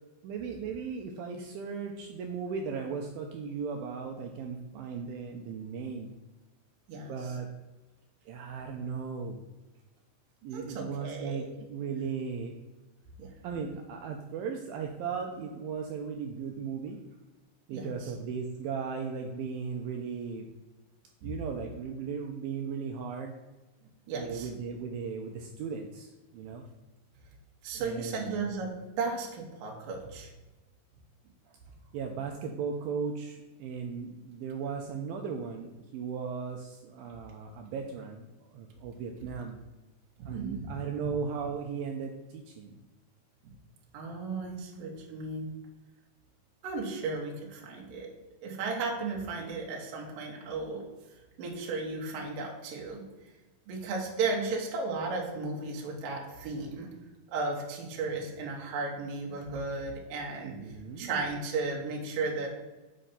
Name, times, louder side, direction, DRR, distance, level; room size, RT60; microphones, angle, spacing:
voice 1, 0.2-6.1 7.1-7.5 8.3-9.4 10.4-12.6 13.4-17.0 17.7-20.5 21.2-23.3 24.1-26.6 27.7-28.3 31.9-39.6 40.3-42.8 60.4-61.1, right 6 dB, 85° right, 3 dB, 2.0 m, -37 dB
voice 2, 10.5-11.5 13.2-13.3 17.7-17.9 21.2-21.3 24.1-24.5 27.6-28.7 29.0-30.3 40.2-40.7 43.9-45.5 46.6-48.1 48.4-50.9 51.4-53.0 53.7-56.9 57.3-60.6 61.0-62.5, right 3 dB, 65° right, -1 dB, 2.6 m, -35 dB
7.8 x 5.0 x 4.2 m, 1.1 s
omnidirectional pair, 4.8 m